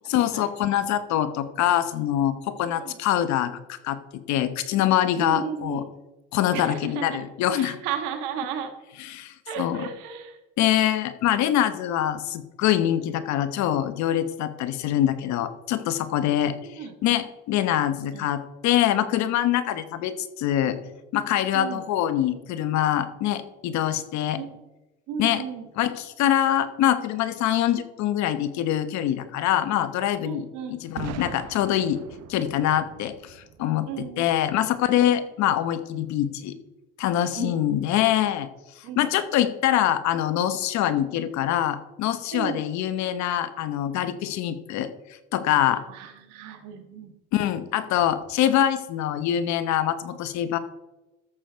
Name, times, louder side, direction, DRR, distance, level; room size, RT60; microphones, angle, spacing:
voice 1, 0.1-5.8 6.3-7.8 9.1-9.8 10.6-16.5 17.0-20.8 21.1-24.4 25.2-25.4 25.8-32.0 32.3-36.6 37.0-38.5 39.0-44.9 45.3-45.8 47.3-50.6, left 11 dB, 65° left, 12 dB, 1.0 m, -24 dB
voice 2, 2.7-3.0 5.2-5.8 6.5-7.2 7.5-8.7 9.5-10.4 16.3-16.9 18.1-18.3 21.5-21.9 24.4-24.5 25.1-25.7 30.2-30.8 33.9-34.6 37.3-37.6 38.8-39.1 42.3-42.6 45.9-47.1, right 7 dB, 75° right, 6 dB, 1.5 m, -34 dB
Boom, 31.0-34.8, right 10 dB, 55° right, 0.8 m, -41 dB
13.5 x 6.5 x 4.5 m, 1.0 s
supercardioid pair, 90°, 30 cm